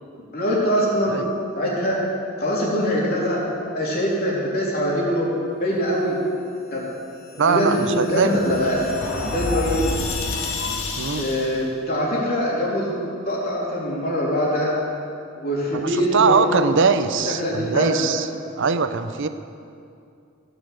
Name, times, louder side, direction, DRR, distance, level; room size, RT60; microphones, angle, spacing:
voice 1, 0.3-1.2 1.5-2.0 2.4-3.4 3.7-5.3 5.6-6.2 6.7-6.9 7.3-9.9 11.1-12.9 13.2-14.7 15.3-16.6 17.2-18.1, equal, 50° left, -5 dB, 3.3 m, -23 dB
sound 1, 7.1-11.7, left 3 dB, 75° left, 1.6 m, -29 dB
voice 2, 7.4-8.4 11.0-11.3 15.7-18.3 18.6-19.3, right 5 dB, 60° right, 11 dB, 0.7 m, -21 dB
15.5 x 7.0 x 7.9 m, 2.5 s
head